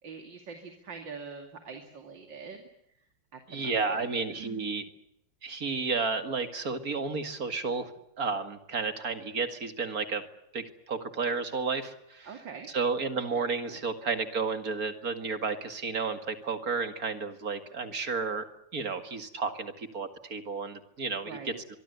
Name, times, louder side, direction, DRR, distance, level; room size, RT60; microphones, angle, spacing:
voice 1, 0.0-2.6 3.3-4.6 12.2-12.7 13.3-13.8 21.2-21.6, right 5 dB, 85° right, 5 dB, 3.2 m, -44 dB
voice 2, 3.5-4.8 5.4-7.9 8.2-10.2 10.5-12.3 12.7-21.8, right 4 dB, 50° right, 8 dB, 2.5 m, -32 dB
24.0 x 24.0 x 8.1 m, 0.79 s
omnidirectional pair, 2.0 m